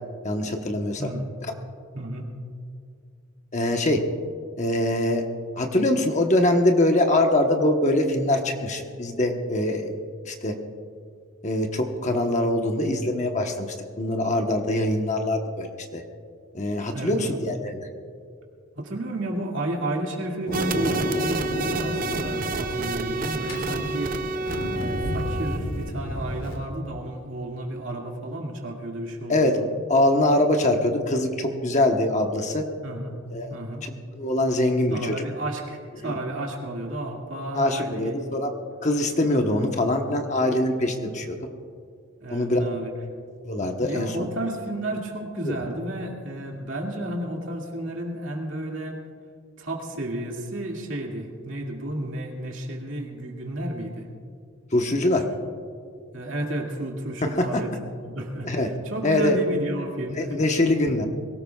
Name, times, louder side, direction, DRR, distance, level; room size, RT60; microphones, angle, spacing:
voice 1, 0.2-1.1 3.5-4.0 4.6-5.2 5.6-9.9 10.2-10.5 11.4-13.7 14.0-15.7 15.9-16.0 16.5-17.9 29.3-32.6 33.3-33.5 33.8-35.2 36.0-36.2 37.5-38.5 38.8-41.4 42.3-42.6 43.4-44.1 45.4-45.5 54.7-55.2 57.2-57.5 58.4-58.7 59.0-59.4 60.2-61.1, left 1 dB, 35° left, 4 dB, 1.1 m, -23 dB
voice 2, 1.0-1.3 1.9-2.3 16.9-17.5 18.7-24.3 24.7-29.7 32.8-33.2 33.5-33.9 34.9-38.2 39.5-39.6 41.0-41.3 42.2-42.9 43.8-49.0 49.6-54.1 56.1-60.4, right 1 dB, 65° right, 0 dB, 2.3 m, -32 dB
Thunder, 20.5-26.6, left 1 dB, 65° left, 2.7 m, -31 dB
sound 1, 20.5-25.9, right 3 dB, 40° right, 0.5 m, -30 dB
22.5 x 18.0 x 2.4 m, 2.3 s
head